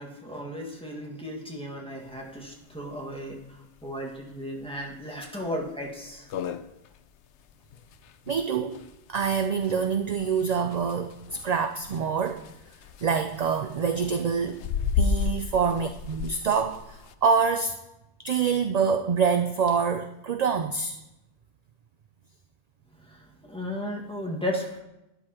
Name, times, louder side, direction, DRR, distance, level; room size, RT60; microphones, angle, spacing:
voice 1, 0.0-3.4 3.8-6.3 23.0-24.8, equal, 5° left, -1 dB, 1.6 m, -35 dB
sound 1, 2.1-2.2 2.5-2.6 2.9-3.0 3.6-3.8 4.3-4.4 4.9-5.0 5.3-5.4 5.9-6.0 6.1-17.1, left 6 dB, 90° left, 0.9 m, -33 dB
voice 2, 8.3-8.8 9.1-12.4 13.0-14.6 15.0-17.8 18.2-21.0, right 6 dB, 55° right, 8 dB, 0.4 m, -26 dB
12.0 x 10.0 x 2.9 m, 0.91 s
omnidirectional pair, 1.1 m